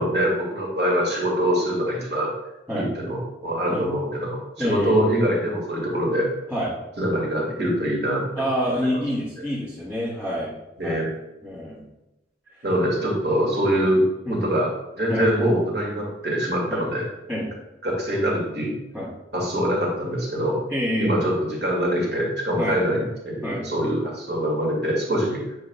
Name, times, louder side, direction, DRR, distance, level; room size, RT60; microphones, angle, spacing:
voice 1, 0.0-2.3 2.7-6.3 7.0-8.2 8.8-8.9 10.8-11.1 12.6-14.0 14.3-14.7 14.9-17.0 17.8-18.7 19.3-20.6 21.0-25.4, equal, 70° right, -3 dB, 2.2 m, -24 dB
voice 2, 4.6-5.0 6.5-6.7 8.3-10.5 10.8-11.1 11.4-11.9 13.8-13.9 14.2-14.4 15.1-15.3 16.7-16.8 17.3-17.5 18.9-19.1 20.7-21.1 22.6-22.8 23.4-23.6, equal, 10° right, -10 dB, 1.6 m, -27 dB
9.2 x 4.8 x 2.3 m, 0.94 s
head